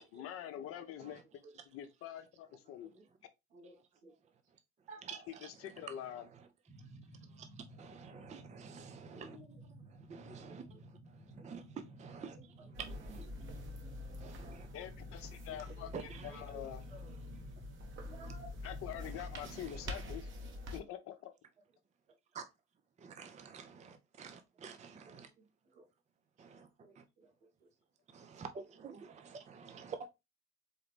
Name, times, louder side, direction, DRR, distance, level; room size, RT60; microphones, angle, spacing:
voice 1, 0.1-1.4 1.7-2.9 5.4-6.2 14.7-16.8 18.6-20.3 20.7-21.3, left 11 dB, 50° left, 0.8 m, -45 dB
voice 2, 1.2-1.6 2.6-3.1 3.5-4.1 4.9-5.3 9.1-9.6 10.4-10.8 12.2-12.7 13.2-13.6 14.4-14.8 15.5-17.2 17.9-18.6 25.0-25.9 26.4-27.7 28.3-28.4 29.7-29.9, right 1 dB, 70° right, 1.9 m, -58 dB
sound 1, 6.7-20.2, right 2 dB, ahead, 1.2 m, -55 dB
voice 3, 7.4-9.4 10.1-10.7 11.2-12.4 12.8-13.3 14.2-14.7 15.9-16.3 19.1-19.8 22.3-22.4 23.0-25.3 26.4-26.7 27.0-27.1 28.1-30.1, right 6 dB, 25° right, 0.6 m, -49 dB
sound 2, 12.7-20.8, left 2 dB, 40° right, 1.2 m, -46 dB
4.1 x 3.8 x 3.3 m
figure-of-eight pair, 55°, 30 cm